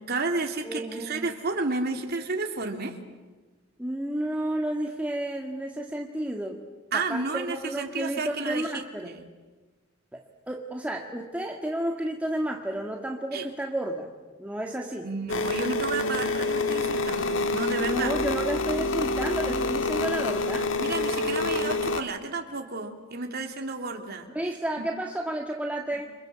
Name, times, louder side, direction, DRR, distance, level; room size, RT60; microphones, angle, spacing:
voice 1, 0.1-3.0 6.9-9.2 13.3-13.5 15.0-18.1 20.8-24.3 24.8-24.9, right 3 dB, 55° right, 3 dB, 3.1 m, -31 dB
voice 2, 0.6-1.3 3.8-6.6 6.9-9.1 10.1-10.2 10.5-14.1 14.4-15.1 17.8-20.7 24.3-26.1, right 1 dB, 5° right, 1 dB, 1.9 m, -31 dB
sound 1, 15.3-22.0, left 2 dB, 70° left, 1.7 m, -27 dB
29.5 x 26.5 x 7.6 m, 1.3 s
head